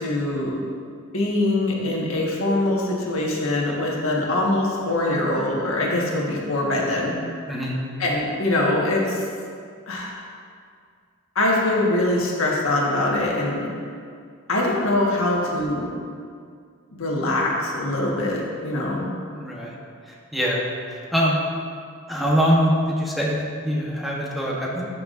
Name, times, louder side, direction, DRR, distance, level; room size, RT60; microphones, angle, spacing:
voice 1, 0.0-0.5 1.1-7.1 8.0-9.2 9.9-10.1 11.3-13.7 14.5-15.9 16.9-19.1, left 1 dB, 80° left, -2 dB, 1.4 m, -23 dB
voice 2, 7.5-7.8 19.3-19.8 20.3-20.6 20.9-21.4 22.1-24.9, equal, ahead, -4 dB, 0.9 m, -23 dB
13.0 x 5.8 x 2.5 m, 2.2 s
head